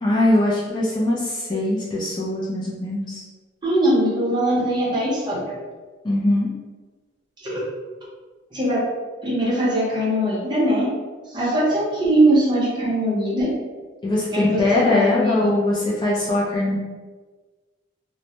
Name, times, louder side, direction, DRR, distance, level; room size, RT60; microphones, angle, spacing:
voice 1, 0.0-3.2 6.0-6.5 14.0-16.8, left 1 dB, 25° left, -6 dB, 0.4 m, -21 dB
voice 2, 3.6-5.5 7.4-7.6 8.5-8.8 9.2-10.9 11.3-13.5 14.3-15.5, right 1 dB, 25° right, -7 dB, 0.7 m, -21 dB
2.1 x 2.1 x 2.8 m, 1.3 s
head